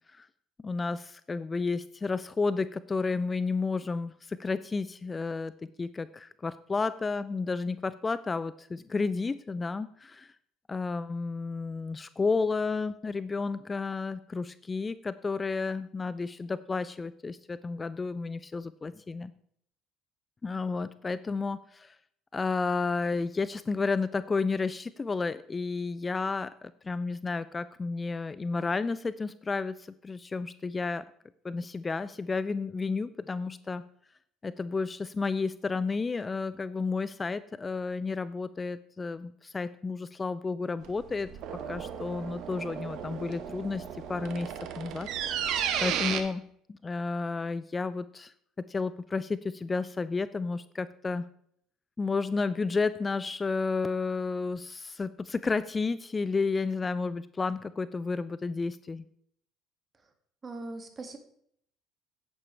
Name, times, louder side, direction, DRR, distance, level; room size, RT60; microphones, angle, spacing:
voice 1, 0.6-10.3 10.7-19.3 20.4-22.0 22.3-31.0 31.4-33.8 34.4-41.3 41.7-46.4 46.7-48.3 48.7-51.3 52.0-59.0, left 4 dB, 25° left, 16 dB, 0.4 m, -32 dB
sound 1, 40.8-46.2, right 8 dB, 65° right, 1.1 m, -34 dB
voice 2, 60.4-61.2, right 2 dB, 30° right, 6 dB, 2.0 m, -40 dB
9.8 x 9.7 x 3.3 m, 0.65 s
hypercardioid pair, 70°, 0 cm